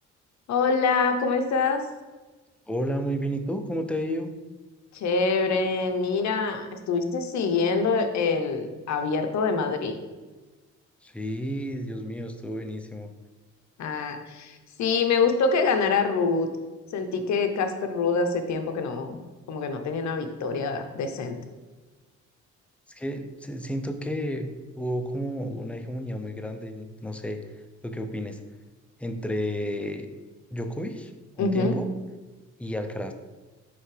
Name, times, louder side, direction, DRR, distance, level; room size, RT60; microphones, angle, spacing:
voice 1, 0.5-1.8 4.9-10.0 13.8-16.5 16.9-19.2 19.5-21.4 31.4-31.8, left 4 dB, 65° left, 7 dB, 0.8 m, -25 dB
voice 2, 2.7-4.3 11.0-13.1 22.9-27.4 27.8-28.4 29.0-30.1 30.5-31.1 31.4-31.9 32.6-33.1, equal, 5° left, 6 dB, 0.6 m, -31 dB
9.3 x 3.4 x 3.3 m, 1.2 s
cardioid pair, 90°, 30 cm